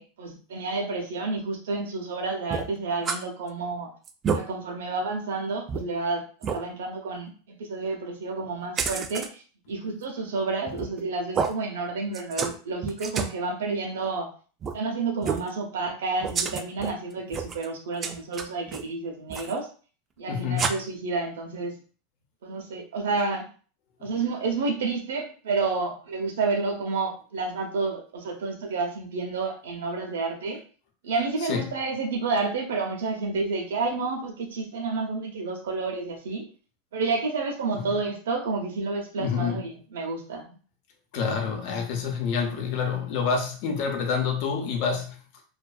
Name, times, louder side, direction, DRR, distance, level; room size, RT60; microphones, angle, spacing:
voice 1, 0.0-3.9 4.3-6.3 6.5-14.3 14.7-19.7 20.2-21.8 22.4-23.5 24.0-30.6 31.0-36.5 36.9-40.6, right 3 dB, 80° right, 2 dB, 0.7 m, -30 dB
sound 1, 2.5-3.2 3.6-3.7 4.0-4.4 5.0-5.1 5.7-5.8 6.4-6.6 8.8-9.3 10.7-11.0 11.3-11.5 12.1-12.6 12.8-13.4 14.6-14.8 15.2-15.5 16.2-16.9 17.3-17.7 18.0-18.8 19.3-19.5 20.6-20.7, right 6 dB, 30° right, 0.3 m, -29 dB
voice 2, 20.3-20.7 24.0-24.1 31.4-31.6 37.7-37.9 39.2-39.6 41.1-45.4, left 6 dB, 60° left, 3 dB, 0.7 m, -28 dB
2.5 x 2.4 x 2.3 m, 0.39 s
hypercardioid pair, 105°, 0 cm